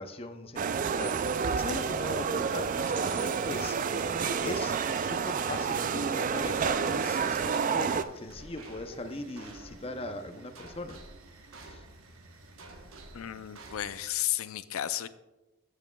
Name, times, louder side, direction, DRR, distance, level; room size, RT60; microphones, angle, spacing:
voice 1, 0.0-4.0 4.4-11.0 11.6-11.8, left 2 dB, 30° left, 7 dB, 0.6 m, -40 dB
sound 1, 0.5-14.1, right 2 dB, 80° right, 1.1 m, -51 dB
sound 2, 0.6-8.0, right 6 dB, 40° right, 0.3 m, -29 dB
sound 3, 8.3-10.5, right 2 dB, 65° right, 2.2 m, -53 dB
voice 2, 13.1-15.1, left 12 dB, 85° left, 14 dB, 0.4 m, -33 dB
13.0 x 7.3 x 2.3 m, 1.0 s
head